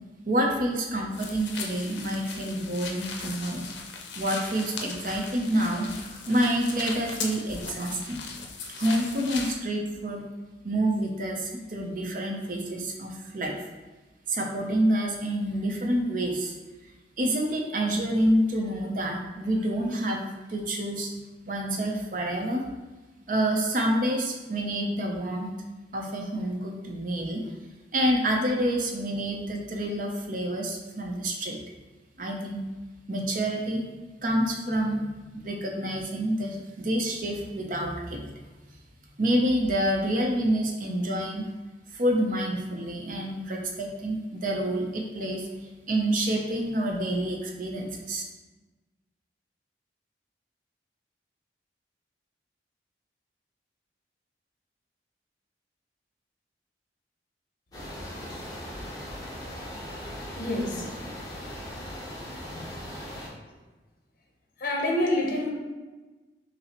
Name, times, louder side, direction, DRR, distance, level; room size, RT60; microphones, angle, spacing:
voice 1, 0.3-3.6 4.2-8.2 8.7-10.3 10.6-13.6 14.3-16.6 17.2-21.1 21.5-22.7 23.3-25.5 25.9-27.4 27.9-31.6 32.2-32.6 33.1-33.9 34.2-35.0 35.3-38.3 39.2-41.5 41.9-48.2, right 1 dB, 50° right, 1 dB, 0.6 m, -28 dB
sound 1, 1.1-9.6, left 4 dB, 80° left, 0.5 m, -38 dB
sound 2, 57.7-63.3, equal, 20° left, 0.8 m, -39 dB
voice 2, 60.0-60.9 64.6-65.5, left 1 dB, 50° left, -1 dB, 0.8 m, -28 dB
5.6 x 2.0 x 2.9 m, 1.2 s
head